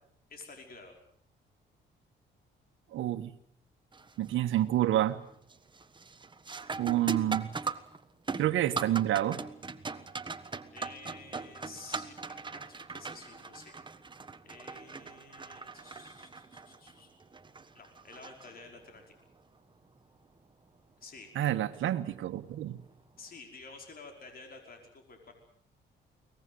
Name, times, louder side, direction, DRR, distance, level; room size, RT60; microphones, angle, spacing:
voice 1, 0.3-1.0 10.7-13.8 14.4-17.2 17.7-19.0 21.0-21.3 23.2-25.3, left 4 dB, 50° left, 3 dB, 5.4 m, -51 dB
voice 2, 2.9-3.3 4.2-5.2 6.8-7.5 8.4-9.4 21.3-22.8, right 13 dB, 80° right, 8 dB, 1.5 m, -28 dB
sound 1, 3.9-4.3 4.7-5.2 5.5-19.0 21.5-21.6 22.4-22.7, right 4 dB, 25° right, 1.4 m, -40 dB
22.5 x 20.0 x 8.0 m, 0.67 s
cardioid pair, 90°, 20 cm